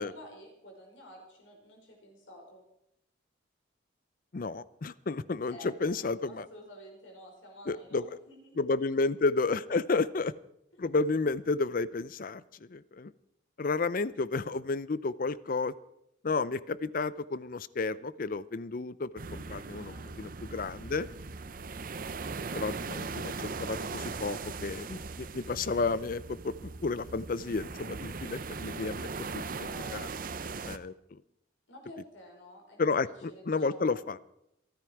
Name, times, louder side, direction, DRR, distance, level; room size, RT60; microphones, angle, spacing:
voice 1, 0.0-2.6 5.5-8.6 19.4-20.2 29.6-30.3 31.7-32.9 33.3-33.4 33.7-34.0, equal, 85° left, 1 dB, 5.5 m, -51 dB
voice 2, 4.3-6.5 7.7-8.0 8.6-10.3 10.8-12.4 12.7-13.1 13.6-15.7 16.2-21.1 22.5-30.1 30.6-31.2 32.8-34.2, left 3 dB, 45° left, 18 dB, 0.5 m, -32 dB
sound 1, 19.2-30.8, right 4 dB, 45° right, 0.6 m, -39 dB
27.5 x 9.6 x 4.6 m, 0.80 s
head